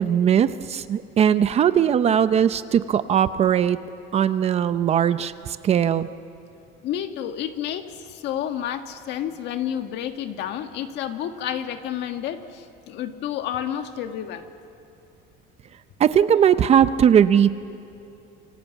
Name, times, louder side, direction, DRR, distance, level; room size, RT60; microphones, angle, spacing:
voice 1, 0.0-3.8 4.1-6.1 16.0-17.5, right 9 dB, 30° right, 12 dB, 0.6 m, -19 dB
voice 2, 6.8-14.5, left 10 dB, 55° left, 7 dB, 1.7 m, -30 dB
28.5 x 24.0 x 8.2 m, 2.8 s
cardioid pair, 165°, 21 cm